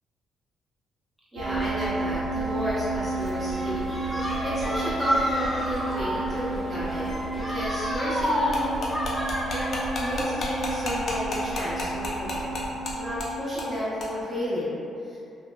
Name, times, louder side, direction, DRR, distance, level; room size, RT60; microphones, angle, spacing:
voice 1, 1.3-3.8 4.1-8.9 9.5-12.6 12.9-15.2, left 1 dB, 20° right, -11 dB, 1.1 m, -32 dB
sound 1, 1.4-13.3, right 2 dB, 85° right, 0.4 m, -32 dB
sound 2, 3.1-10.3, equal, 5° left, 0.7 m, -30 dB
sound 3, 8.5-12.9 13.2-13.3 13.6-13.7 14.0-14.1, left 2 dB, 50° left, 0.5 m, -31 dB
2.8 x 2.2 x 2.2 m, 2.6 s
cardioid pair, 90°, 0 cm